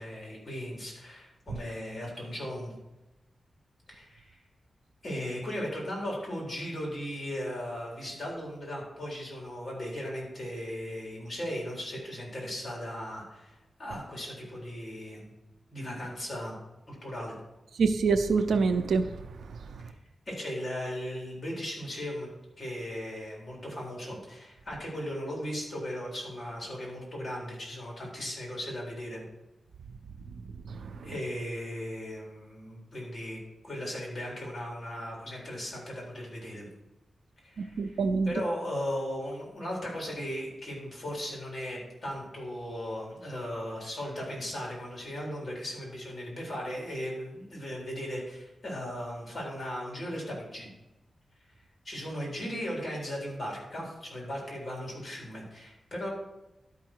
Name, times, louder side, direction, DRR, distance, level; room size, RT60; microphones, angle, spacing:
voice 1, 0.0-2.7 3.9-4.4 5.0-15.3 15.7-16.6 16.9-17.4 19.8-20.0 20.3-22.3 22.6-29.2 31.0-33.4 33.6-36.7 37.4-38.0 38.3-50.7 51.8-56.1, equal, 35° left, 4.0 m, -37 dB
voice 2, 17.8-19.1 19.7-19.8 30.7-31.1 37.6-38.3, right 4 dB, 85° right, 0.5 m, -26 dB
12.0 x 5.8 x 4.6 m
wide cardioid pair, 110°, 0 cm